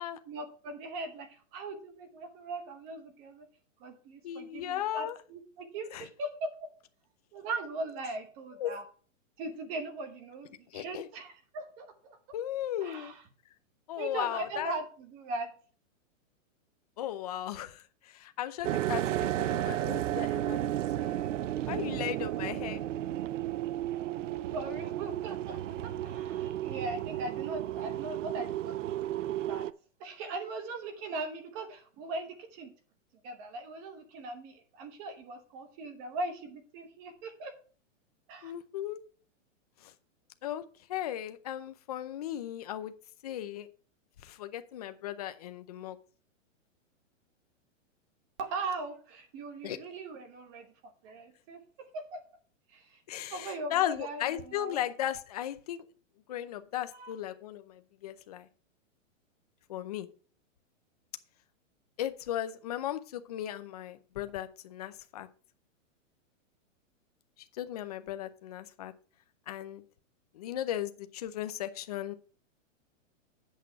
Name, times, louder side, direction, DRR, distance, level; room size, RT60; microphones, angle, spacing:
voice 1, 0.3-3.5 3.8-6.5 7.3-8.8 9.4-12.2 12.8-13.2 14.0-15.5 24.5-29.7 30.0-32.7 33.2-37.5 38.3-38.5 48.4-51.6 51.9-52.2 52.7-53.0 53.3-54.8 56.9-57.1, right 3 dB, 20° right, 8 dB, 1.0 m, -40 dB
voice 2, 4.2-5.2 5.9-6.1 8.6-8.8 10.7-11.1 12.3-13.1 13.9-14.7 17.0-20.6 21.0-21.3 21.7-22.8 38.4-39.0 39.8-39.9 40.4-40.6 40.9-42.9 43.2-43.7 44.2-46.0 49.6-49.8 53.1-55.8 56.3-58.5 59.7-60.1 62.0-65.3 67.5-68.9 69.5-69.8 70.3-72.1, left 12 dB, 30° left, 10 dB, 0.6 m, -36 dB
sound 1, 18.6-29.7, right 13 dB, 70° right, 0.5 m, -33 dB
8.3 x 6.1 x 4.6 m, 0.40 s
hypercardioid pair, 170°, 39 cm